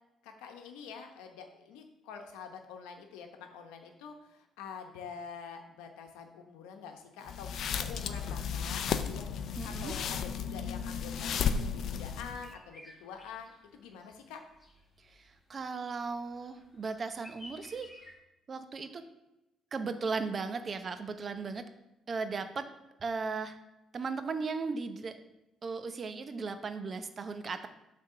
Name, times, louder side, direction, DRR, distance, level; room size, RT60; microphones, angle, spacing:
voice 1, 0.2-9.3 9.6-14.4, left 6 dB, 90° left, 5 dB, 0.9 m, -46 dB
sound 1, 7.2-12.5, left 7 dB, 65° left, 0.5 m, -34 dB
voice 2, 9.6-9.9 15.1-17.9 18.5-19.0 19.7-21.6 22.1-22.7 23.0-23.6 23.9-25.1 25.6-27.7, right 4 dB, 40° right, 9 dB, 0.7 m, -36 dB
sound 2, 12.4-18.2, left 1 dB, 25° left, 2.2 m, -56 dB
7.9 x 3.6 x 5.6 m, 0.94 s
supercardioid pair, 70°, 0 cm